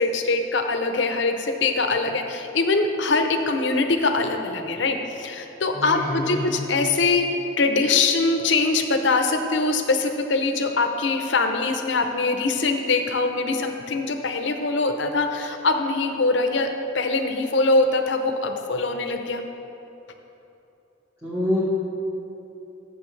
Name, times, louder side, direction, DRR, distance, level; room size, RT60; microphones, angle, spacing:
voice 1, 0.0-7.2 7.6-16.7 16.9-19.4, left 3 dB, 65° left, 6 dB, 0.7 m, -23 dB
voice 2, 5.7-6.6 21.2-21.6, left 1 dB, 15° right, -8 dB, 1.2 m, -26 dB
13.0 x 6.9 x 3.2 m, 2.9 s
head